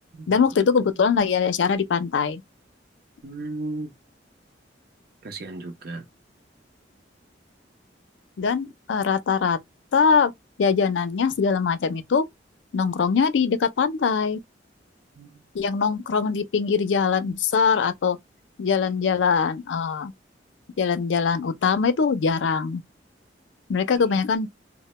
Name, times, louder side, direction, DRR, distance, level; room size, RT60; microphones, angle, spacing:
voice 1, 0.3-2.4 8.4-9.6 9.9-10.3 10.6-12.2 12.7-14.4 15.5-18.2 18.6-20.1 20.8-22.8 23.7-24.5, left 5 dB, 85° left, 0.4 m, -22 dB
voice 2, 3.2-3.9 5.2-6.0 15.2-15.4 23.9-24.2, right 2 dB, 55° right, 0.6 m, -35 dB
2.1 x 2.0 x 3.0 m
head